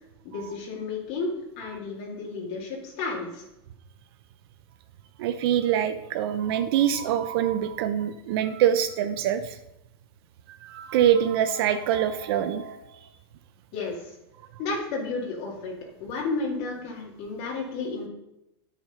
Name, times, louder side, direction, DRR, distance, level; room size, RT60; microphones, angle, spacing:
voice 1, 0.2-3.5 13.7-14.2 14.6-15.7 16.0-18.1, left 3 dB, 55° left, -3 dB, 2.3 m, -32 dB
voice 2, 5.2-9.6 10.6-12.8, right 10 dB, 70° right, 10 dB, 0.7 m, -24 dB
10.5 x 5.1 x 5.5 m, 0.87 s
supercardioid pair, 135°, 13 cm